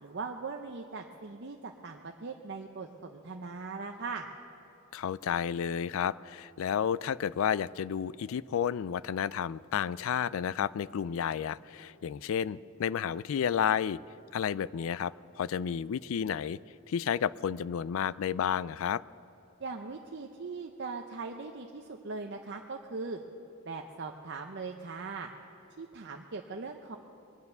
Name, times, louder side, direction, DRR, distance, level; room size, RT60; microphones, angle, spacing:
voice 1, 0.0-4.3 19.6-23.2 23.7-25.3 25.8-27.0, right 4 dB, 50° right, 3 dB, 0.7 m, -40 dB
voice 2, 4.9-14.0 14.3-16.6 16.9-19.0, left 8 dB, 65° left, 19 dB, 0.3 m, -31 dB
22.0 x 9.5 x 6.7 m, 2.9 s
head